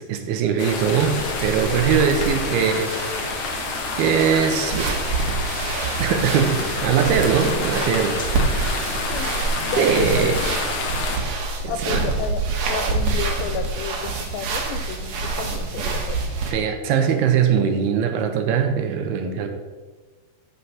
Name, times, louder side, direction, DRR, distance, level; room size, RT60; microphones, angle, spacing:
voice 1, 0.0-2.9 4.0-4.9 6.0-8.2 8.5-8.9 9.8-10.4 11.6-12.0 16.5-19.5, right 7 dB, 80° right, 6 dB, 2.7 m, -21 dB
sound 1, 0.6-11.2, left 3 dB, 65° left, 1.3 m, -28 dB
sound 2, 1.1-16.5, right 3 dB, 55° right, 2.1 m, -27 dB
voice 2, 9.6-10.3 11.7-12.4 12.7-16.2, left 7 dB, 85° left, 6 dB, 2.1 m, -31 dB
13.0 x 5.8 x 5.8 m, 1.3 s
omnidirectional pair, 4.8 m